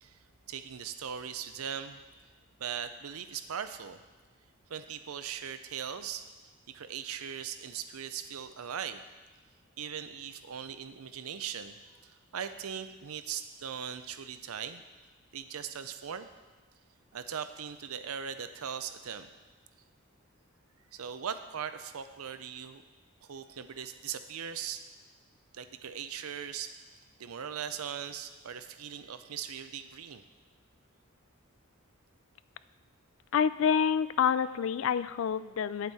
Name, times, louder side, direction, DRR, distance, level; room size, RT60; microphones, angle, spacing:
voice 1, 0.5-2.0 2.6-4.0 4.7-6.3 6.7-9.0 9.8-11.8 12.0-14.8 15.3-16.3 17.1-19.3 20.9-22.8 23.2-24.8 25.5-26.7 27.2-30.2, right 8 dB, 90° right, 11 dB, 0.6 m, -39 dB
voice 2, 33.3-35.9, left 7 dB, 65° left, 15 dB, 0.3 m, -27 dB
9.1 x 8.1 x 4.2 m, 1.3 s
head